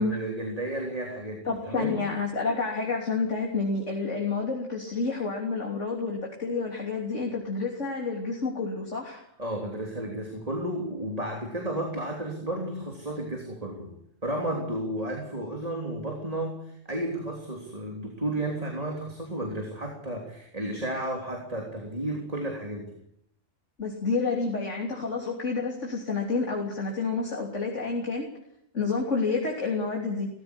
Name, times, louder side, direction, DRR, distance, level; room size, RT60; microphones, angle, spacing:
voice 1, 0.0-2.0 9.4-13.9 14.2-22.9, right 1 dB, 30° right, 1 dB, 3.5 m, -33 dB
voice 2, 1.5-9.2 23.8-28.3 28.7-30.3, left 4 dB, 70° left, 0 dB, 3.7 m, -29 dB
18.5 x 15.5 x 9.8 m, 0.72 s
omnidirectional pair, 1.3 m